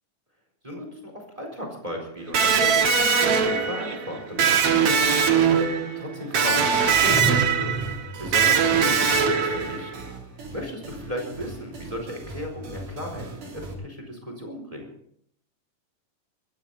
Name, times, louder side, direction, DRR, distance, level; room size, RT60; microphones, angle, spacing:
voice 1, 0.6-10.1 10.5-14.9, equal, 10° right, 3 dB, 4.2 m, -36 dB
Electric guitar, 2.3-10.0, right 6 dB, 55° right, 2.3 m, -21 dB
sound 1, 6.6-13.7, right 2 dB, 70° right, 4.9 m, -40 dB
sound 2, 7.0-8.5, right 1 dB, 50° left, 4.3 m, -28 dB
21.0 x 15.0 x 4.2 m, 0.68 s
omnidirectional pair, 3.8 m